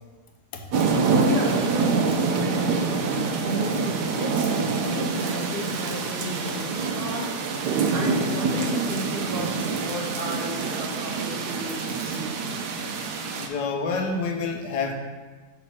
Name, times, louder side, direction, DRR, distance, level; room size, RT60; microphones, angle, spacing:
sound 1, 0.7-13.5, right 4 dB, 85° right, 1.3 m, -26 dB
voice 1, 0.8-2.0 3.4-12.3, equal, 40° right, -2 dB, 1.0 m, -33 dB
voice 2, 13.4-14.9, left 4 dB, 90° left, 3 dB, 1.4 m, -28 dB
5.8 x 4.1 x 6.1 m, 1.3 s
omnidirectional pair, 1.7 m